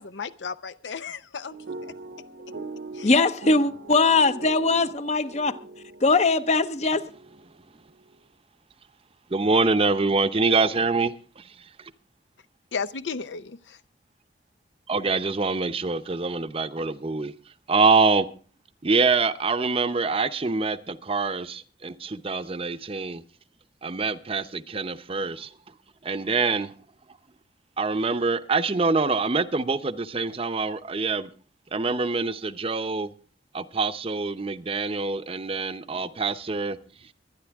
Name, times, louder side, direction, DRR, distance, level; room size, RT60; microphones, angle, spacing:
voice 1, 0.0-1.6 1.8-1.9 2.9-3.2 12.7-13.8, left 5 dB, 90° left, 0.6 m, -34 dB
sound 1, 1.5-7.7, right 3 dB, 70° right, 0.9 m, -41 dB
voice 2, 3.0-5.6 6.0-7.1, left 3 dB, 40° left, 0.7 m, -21 dB
voice 3, 9.3-11.4 11.8-11.9 14.9-17.3 17.7-18.3 18.8-23.2 23.8-25.5 26.0-26.7 27.8-31.3 31.7-33.1 33.5-36.8, right 4 dB, 30° right, 0.7 m, -25 dB
24.0 x 9.5 x 3.5 m
head